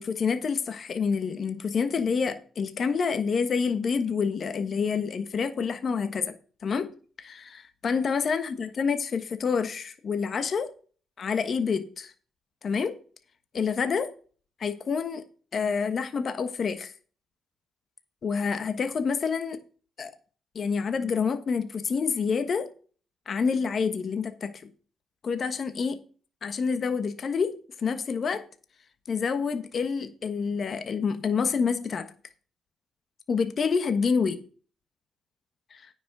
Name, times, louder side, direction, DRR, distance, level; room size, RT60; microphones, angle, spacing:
voice 1, 0.0-6.3 6.6-6.9 7.2-10.7 11.2-12.1 12.6-13.0 13.5-14.1 14.6-15.2 15.5-16.9 18.2-19.6 20.0-20.1 20.5-22.7 23.3-24.5 25.2-26.0 26.4-28.4 29.1-32.1 33.3-34.4 35.7-35.9, left 5 dB, 50° left, 1.3 m, -28 dB
9.6 x 6.1 x 6.1 m
cardioid pair, 90°, 0 cm